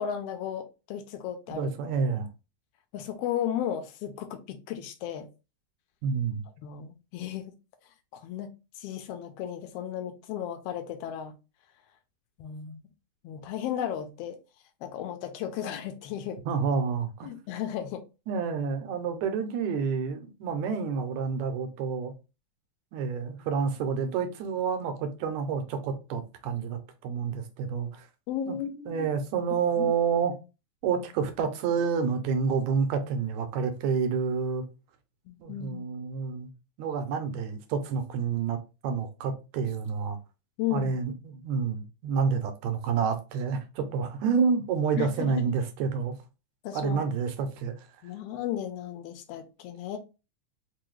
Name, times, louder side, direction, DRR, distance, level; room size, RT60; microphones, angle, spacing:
voice 1, 0.0-1.7 2.9-5.3 6.6-7.5 8.1-8.5 8.8-11.3 12.4-12.8 13.2-14.4 14.8-16.4 17.2-18.0 28.3-29.1 29.8-30.0 35.3-35.9 40.6-41.0 45.0-45.5 46.6-47.0 48.0-50.0, left 10 dB, 90° left, 1.3 m, -34 dB
voice 2, 1.5-2.3 6.0-6.4 16.5-17.3 18.3-22.1 22.9-28.1 28.5-28.6 28.9-30.3 30.8-34.6 35.4-36.5 36.8-38.6 38.8-40.2 40.7-46.2 46.7-47.8, right 6 dB, 80° right, 1.9 m, -29 dB
4.7 x 2.2 x 3.1 m
omnidirectional pair, 3.3 m